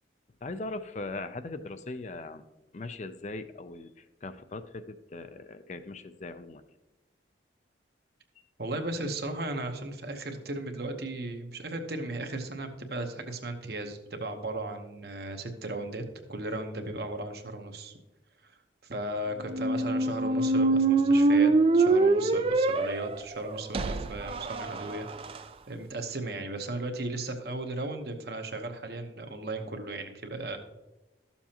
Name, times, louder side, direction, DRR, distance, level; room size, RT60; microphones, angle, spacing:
voice 1, 0.4-2.4 2.7-3.9 4.2-6.6, left 2 dB, 40° left, 11 dB, 0.4 m, -39 dB
voice 2, 8.6-16.0 16.3-18.0 18.4-25.3 25.7-30.6, right 2 dB, 60° right, 5 dB, 1.0 m, -36 dB
sound 1, 19.5-25.4, right 3 dB, 30° right, 0.4 m, -24 dB
13.0 x 7.0 x 2.9 m, 1.1 s
head